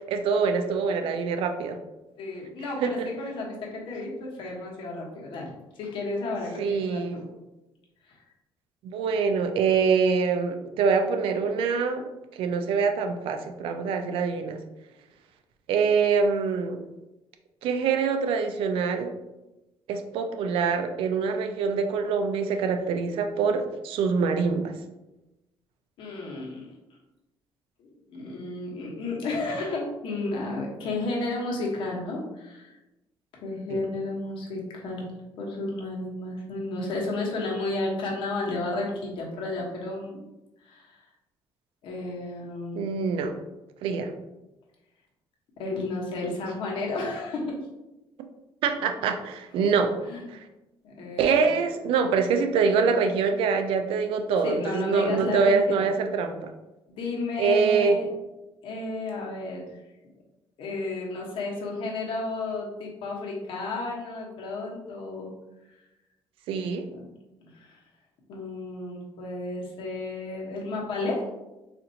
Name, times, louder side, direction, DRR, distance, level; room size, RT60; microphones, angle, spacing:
voice 1, 0.1-1.8 2.8-3.1 6.6-7.2 8.8-12.1 12.3-14.6 15.7-16.8 17.6-19.2 19.9-24.7 33.7-33.8 42.7-43.3 43.8-44.1 48.6-49.9 50.3-50.4 51.2-56.5 57.4-58.0 66.5-66.9, right 5 dB, 80° right, 6 dB, 0.4 m, -25 dB
voice 2, 2.2-5.5 5.8-7.2 8.1-8.2 26.0-26.7 27.8-32.8 33.4-40.3 40.6-41.0 41.8-42.8 43.8-43.9 45.6-47.6 50.1-50.2 50.8-51.4 54.4-55.8 56.9-58.1 58.6-59.8 60.6-65.3 66.9-67.1 67.4-67.8 68.3-71.2, left 2 dB, 70° left, -2 dB, 1.0 m, -32 dB
4.2 x 2.6 x 2.7 m, 0.99 s
cardioid pair, 130°, 9 cm